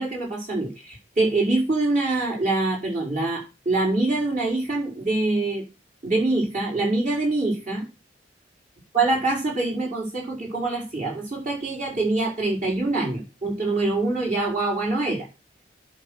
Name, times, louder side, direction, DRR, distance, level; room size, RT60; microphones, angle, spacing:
voice 1, 0.0-5.6 6.0-7.8 8.9-15.3, right 2 dB, 45° right, -3 dB, 5.5 m, -24 dB
11.0 x 3.9 x 6.6 m, 0.28 s
head